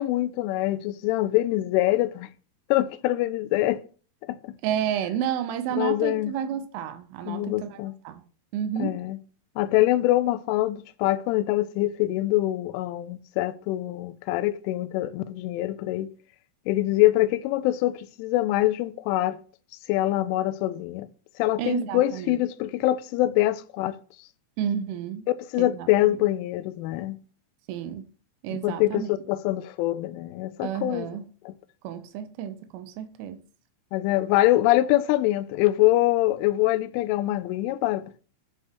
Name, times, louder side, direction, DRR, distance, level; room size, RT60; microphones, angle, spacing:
voice 1, 0.0-2.3 2.7-3.8 4.3-4.4 5.8-6.3 7.3-7.9 8.8-9.2 9.6-16.1 16.7-19.4 19.9-21.1 21.4-24.0 25.3-27.2 28.5-31.1 31.5-31.6 33.9-38.0, left 16 dB, 85° left, 3.1 m, -24 dB
voice 2, 4.6-7.8 8.1-8.2 8.5-9.0 21.6-22.4 24.6-25.3 25.6-25.9 27.7-28.0 28.4-29.1 30.6-31.3 31.8-33.4, right 9 dB, 90° right, 3.4 m, -30 dB
11.5 x 5.8 x 3.0 m
omnidirectional pair, 5.5 m